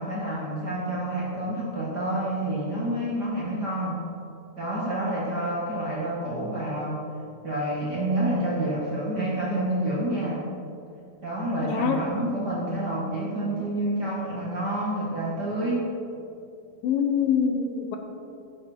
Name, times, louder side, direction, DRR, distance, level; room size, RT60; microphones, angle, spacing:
voice 1, 0.0-4.0 4.6-7.0 7.4-10.4 11.2-15.9, right 1 dB, 35° right, -6 dB, 1.8 m, -28 dB
voice 2, 11.6-12.0 16.8-18.0, left 7 dB, 75° left, 4 dB, 2.4 m, -24 dB
14.0 x 9.7 x 4.4 m, 2.6 s
omnidirectional pair, 4.2 m